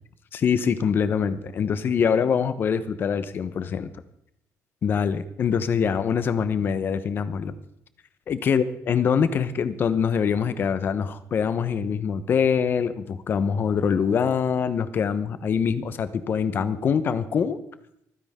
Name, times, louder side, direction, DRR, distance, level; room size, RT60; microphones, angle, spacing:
voice 1, 0.3-3.9 4.8-7.6 8.3-17.6, left 7 dB, 35° left, 13 dB, 1.0 m, -24 dB
26.5 x 9.8 x 3.7 m, 0.74 s
cardioid pair, 160°, 6 cm